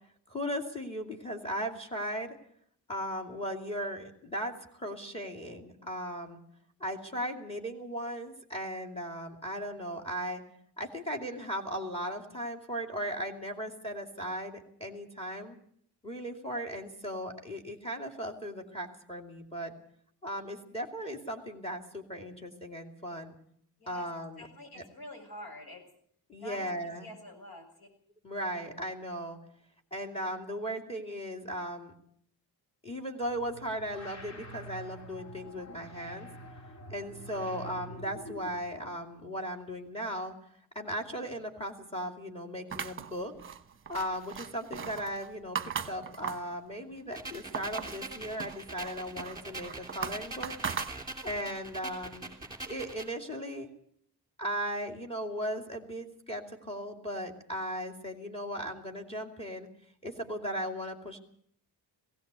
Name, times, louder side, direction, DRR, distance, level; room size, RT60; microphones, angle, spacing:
voice 1, 0.3-2.3 2.9-6.4 6.8-10.4 10.8-15.6 16.0-19.7 20.2-23.4 23.9-24.5 24.7-24.8 26.3-27.1 28.2-29.4 29.9-31.9 32.8-36.3 36.9-40.3 40.7-43.3 43.9-50.5 51.2-52.4 52.7-53.7 54.4-59.7 60.0-61.2, equal, 15° left, 4 dB, 2.6 m, -37 dB
voice 2, 24.4-25.8 26.4-27.9, left 1 dB, 60° left, 3 dB, 7.7 m, -47 dB
sound 1, 33.2-38.8, right 1 dB, 40° left, 2.1 m, -47 dB
sound 2, 42.7-46.6 47.0-48.0 48.4-51.4, right 7 dB, 30° right, 1.1 m, -39 dB
sound 3, 47.1-53.1, right 2 dB, 10° right, 3.0 m, -43 dB
19.0 x 17.0 x 8.2 m, 0.64 s
wide cardioid pair, 150°, 41 cm